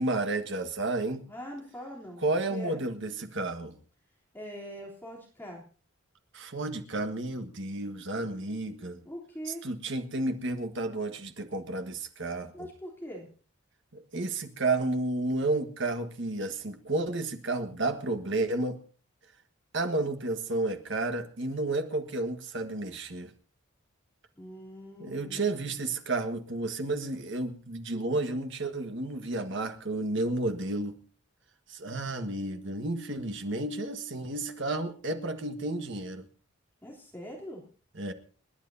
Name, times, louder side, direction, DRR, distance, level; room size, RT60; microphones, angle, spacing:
voice 1, 0.0-1.2 2.2-3.8 6.3-9.0 9.5-12.7 13.9-18.8 19.7-23.3 25.0-31.0 31.7-36.3 38.0-38.1, right 2 dB, 60° right, 1.6 m, -31 dB
voice 2, 1.3-2.2 2.5-2.8 4.3-5.6 9.1-9.6 12.5-13.3 24.4-25.7 36.8-37.6, equal, 10° left, 3.4 m, -42 dB
29.5 x 10.5 x 2.8 m
head